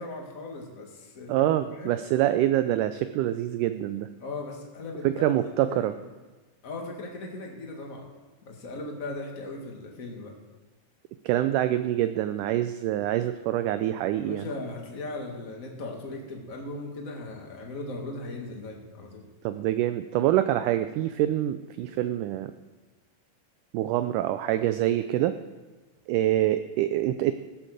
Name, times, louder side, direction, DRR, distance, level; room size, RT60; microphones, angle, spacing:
voice 1, 0.0-2.0 4.2-5.8 6.6-8.1 8.5-10.3 14.2-19.3 21.8-22.1, left 2 dB, 30° left, 0 dB, 1.7 m, -38 dB
voice 2, 1.3-4.1 5.0-5.9 11.2-14.5 19.4-22.5 23.7-25.4 26.1-27.3, right 13 dB, 90° right, 11 dB, 1.8 m, -25 dB
15.5 x 7.5 x 6.6 m, 1.3 s
omnidirectional pair, 4.2 m